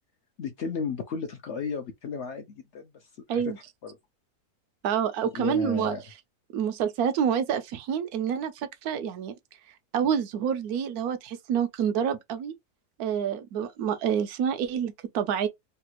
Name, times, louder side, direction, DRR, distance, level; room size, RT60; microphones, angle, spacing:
voice 1, 0.4-3.4 3.8-4.0 5.2-6.0, left 5 dB, 65° left, 0.7 m, -34 dB
voice 2, 4.8-5.9 6.5-9.3 9.9-12.5 13.0-15.5, right 8 dB, 75° right, 1.0 m, -27 dB
3.3 x 2.3 x 2.9 m
omnidirectional pair, 1.6 m